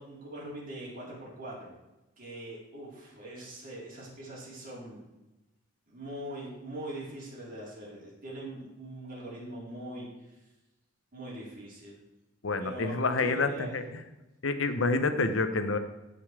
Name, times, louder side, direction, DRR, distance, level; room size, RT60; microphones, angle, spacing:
voice 1, 0.0-1.7 2.2-5.0 5.9-10.1 11.1-12.0 12.6-13.8, right 1 dB, 45° right, -5 dB, 4.3 m, -42 dB
voice 2, 12.4-13.8 14.4-15.8, left 3 dB, 70° left, 9 dB, 0.9 m, -28 dB
16.0 x 5.5 x 4.9 m, 1.0 s
head